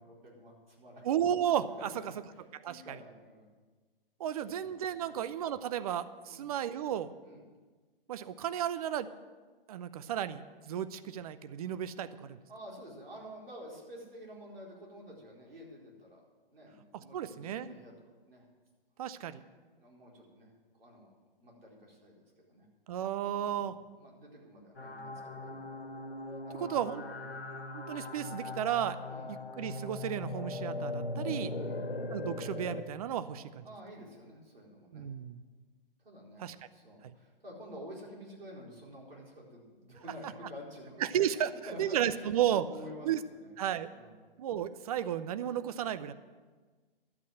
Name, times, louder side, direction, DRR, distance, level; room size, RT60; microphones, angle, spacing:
voice 1, 0.0-1.1 1.8-3.5 4.4-4.6 5.0-5.2 6.3-6.5 7.2-7.4 12.5-16.2 16.5-17.9 18.3-18.4 19.8-20.5 20.8-21.1 21.4-22.7 23.5-25.6 26.4-26.8 27.2-27.4 29.0-29.3 31.5-31.8 33.6-35.0 36.0-41.1 41.4-43.5 43.9-44.2, equal, 75° right, -3 dB, 4.4 m, -50 dB
voice 2, 1.0-1.9 2.5-3.0 4.2-7.1 8.1-9.1 9.7-12.4 16.9-17.7 19.0-19.4 22.9-23.7 26.6-27.0 27.7-29.0 29.3-31.5 32.1-33.6 34.9-35.4 36.4-36.6 41.0-41.5 41.8-42.7 43.0-43.2 43.6-43.9 44.4-46.1, right 10 dB, 40° right, 14 dB, 0.6 m, -33 dB
sound 1, 24.8-32.8, left 2 dB, 85° left, 1.1 m, -39 dB
12.0 x 8.3 x 7.8 m, 1.4 s
figure-of-eight pair, 125°, 29 cm